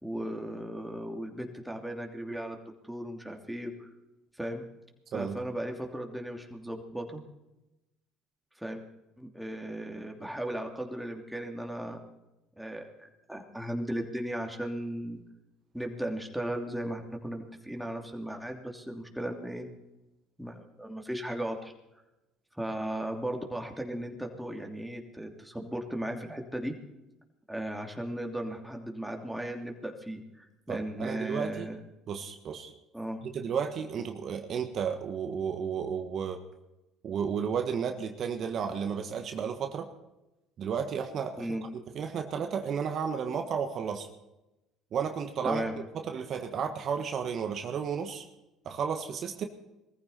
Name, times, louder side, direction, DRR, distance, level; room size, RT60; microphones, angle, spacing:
voice 1, 0.0-2.6 2.8-3.7 4.4-4.6 5.1-7.2 8.6-8.8 9.2-12.0 12.6-15.2 15.7-19.7 20.4-21.7 22.6-26.7 27.5-31.8 32.9-33.2 41.4-41.6 45.4-45.8, right 1 dB, 5° right, 2 dB, 2.9 m, -36 dB
voice 2, 30.7-31.7 32.1-32.7 33.2-36.4 37.0-39.9 40.6-41.5 41.7-44.1 44.9-45.6 45.9-48.2 48.6-49.4, right 7 dB, 50° right, 6 dB, 1.5 m, -33 dB
21.0 x 14.5 x 4.3 m, 0.96 s
hypercardioid pair, 70°, 0 cm